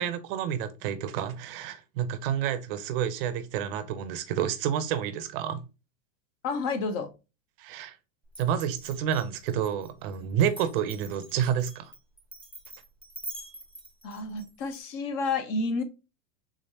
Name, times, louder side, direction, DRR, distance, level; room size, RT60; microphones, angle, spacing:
voice 1, 0.0-5.6 7.6-8.0 8.4-11.9, right 9 dB, 45° right, 0.5 m, -29 dB
voice 2, 6.4-7.1 14.0-15.8, left 3 dB, 35° left, 0.7 m, -30 dB
Glass, 8.3-14.8, right 2 dB, 5° left, 0.4 m, -45 dB
3.7 x 3.2 x 2.7 m
supercardioid pair, 150°, 40 cm